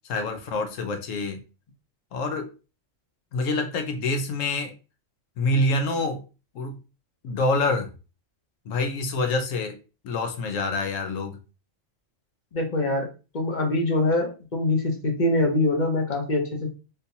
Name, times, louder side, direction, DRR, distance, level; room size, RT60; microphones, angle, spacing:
voice 1, 0.0-1.4 2.1-2.5 3.3-4.7 5.4-6.2 6.5-6.8 7.2-7.9 8.7-9.7 10.0-11.4, left 2 dB, 80° left, 6 dB, 1.1 m, -26 dB
voice 2, 12.5-13.1 13.3-16.7, left 2 dB, 45° left, 2 dB, 0.8 m, -24 dB
3.7 x 2.7 x 2.7 m, 0.32 s
omnidirectional pair, 1.3 m